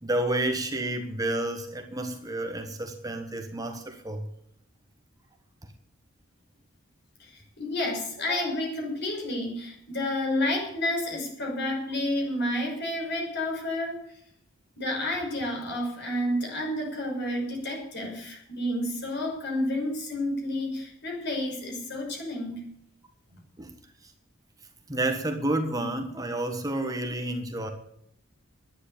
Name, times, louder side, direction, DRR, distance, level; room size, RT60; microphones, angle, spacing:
voice 1, 0.0-4.3 23.6-23.7 24.9-27.7, right 1 dB, 20° right, 4 dB, 1.4 m, -30 dB
voice 2, 7.2-14.0 14.8-22.6 23.3-23.4, left 1 dB, 55° left, 1 dB, 5.9 m, -30 dB
11.5 x 10.0 x 8.5 m, 0.72 s
head